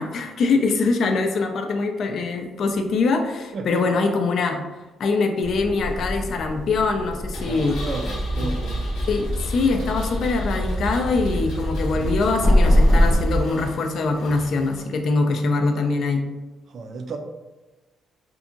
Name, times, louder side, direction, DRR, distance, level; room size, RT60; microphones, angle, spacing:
voice 1, 0.0-4.6 5.0-7.8 8.4-8.5 9.1-16.2, left 3 dB, 65° left, 5 dB, 0.4 m, -23 dB
voice 2, 3.5-3.9 7.4-8.9 11.9-12.1 14.6-14.8 16.7-17.2, right 3 dB, 55° right, 5 dB, 0.3 m, -33 dB
sound 1, 5.4-13.2, left 1 dB, 30° left, 0.7 m, -24 dB
Engine, 7.3-14.8, left 1 dB, 90° left, 0.8 m, -40 dB
sound 2, 7.7-13.5, right 1 dB, ahead, 0.6 m, -30 dB
2.7 x 2.4 x 2.5 m, 1.1 s
cardioid pair, 90°, 0 cm